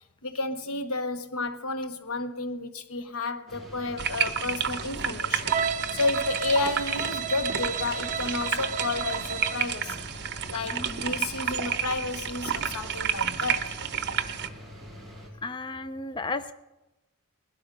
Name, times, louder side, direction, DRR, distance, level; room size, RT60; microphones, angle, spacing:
voice 1, 0.2-5.5 5.9-10.1 10.5-13.8, left 3 dB, 75° left, 1.0 m, -31 dB
sound 1, 3.5-15.3, equal, ahead, 3.5 m, -45 dB
sound 2, 4.0-14.5, right 7 dB, 50° right, 0.9 m, -31 dB
Bowed string instrument, 5.5-9.7, right 7 dB, 35° right, 0.5 m, -33 dB
voice 2, 15.4-16.5, left 3 dB, 20° left, 0.5 m, -34 dB
20.0 x 12.5 x 5.2 m
head